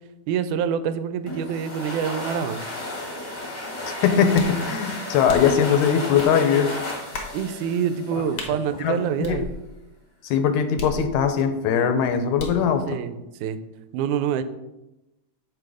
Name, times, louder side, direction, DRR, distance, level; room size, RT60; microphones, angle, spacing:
voice 1, 0.3-2.7 7.3-9.5 12.9-13.6 13.9-14.4, right 8 dB, 85° right, 11 dB, 2.0 m, -26 dB
sound 1, 1.3-8.7, left 2 dB, 30° left, 0.9 m, -33 dB
voice 2, 4.0-6.7 8.8-9.4 10.2-13.0, left 7 dB, 80° left, 8 dB, 2.0 m, -21 dB
sound 2, 4.3-4.6 5.3-5.6 6.2-6.3 7.1-7.4 8.4-8.5 9.2-9.9 10.8-11.4 12.4-12.7, left 2 dB, 60° left, 1.1 m, -35 dB
6.8 x 6.2 x 4.8 m, 0.97 s
omnidirectional pair, 3.5 m